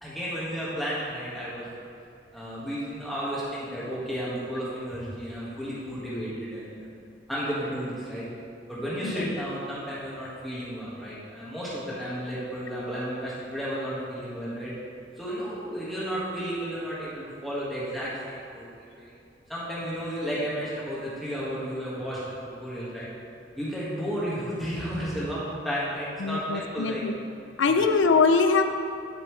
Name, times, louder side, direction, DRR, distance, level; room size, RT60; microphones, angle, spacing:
voice 1, 0.0-1.7 2.3-6.9 7.3-8.3 8.7-14.7 15.2-19.1 19.5-22.2 22.6-23.1 23.6-27.0 27.7-27.9, equal, ahead, -9 dB, 1.7 m, -33 dB
voice 2, 26.2-27.1 27.6-28.6, left 4 dB, 80° left, 6 dB, 0.5 m, -22 dB
11.5 x 5.9 x 3.3 m, 2.4 s
head